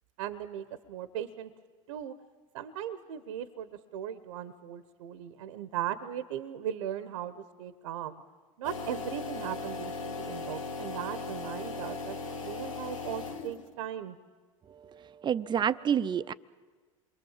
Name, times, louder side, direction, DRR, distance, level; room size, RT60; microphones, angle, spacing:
voice 1, 0.2-1.5 1.9-2.1 2.5-8.2 8.6-14.2, right 10 dB, 75° right, 1.0 m, -38 dB
sound 1, 8.6-13.8, left 4 dB, 90° left, 1.6 m, -38 dB
voice 2, 14.7-16.3, right 8 dB, 30° right, 0.6 m, -29 dB
27.5 x 22.5 x 7.4 m
hypercardioid pair, 90°, 16 cm